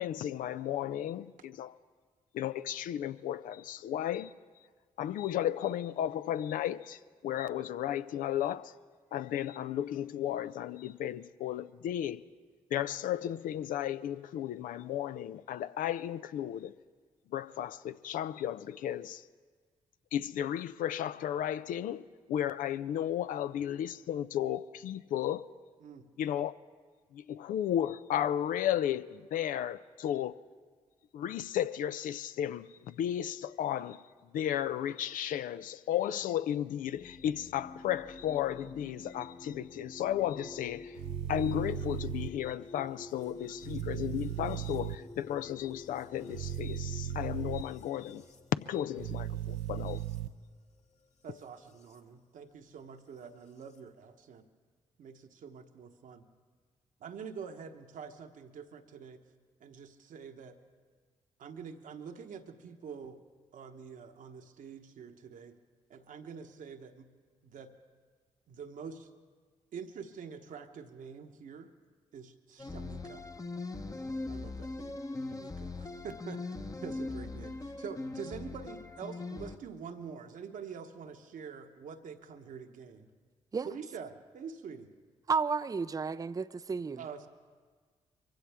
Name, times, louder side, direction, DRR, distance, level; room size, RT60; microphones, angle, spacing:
voice 1, 0.0-1.7 2.3-4.3 5.0-8.7 9.1-12.2 12.7-16.7 17.3-19.2 20.1-25.5 26.2-26.5 27.1-30.4 31.1-34.0 34.3-41.0 41.3-48.2 48.7-50.0, left 11 dB, 70° left, 0.4 m, -34 dB
sound 1, 36.9-52.0 53.2-53.8, left 2 dB, 50° left, 1.5 m, -51 dB
sound 2, 40.9-42.3 43.6-45.0 46.3-47.6 49.0-50.3, right 11 dB, 85° right, 0.4 m, -36 dB
voice 2, 51.2-54.4 55.0-56.2 57.0-59.2 59.6-60.6 61.4-63.2 63.5-65.6 65.9-67.1 67.4-67.7 68.5-69.1 69.7-71.7 72.1-73.2 74.3-75.0 75.3-83.1 83.6-84.9 87.0-87.3, right 6 dB, 65° right, 1.1 m, -46 dB
sound 3, 72.6-79.6, left 2 dB, 25° left, 0.9 m, -40 dB
voice 3, 85.3-87.0, right 5 dB, 25° right, 0.4 m, -32 dB
23.0 x 15.5 x 3.5 m
hypercardioid pair, 45°, 14 cm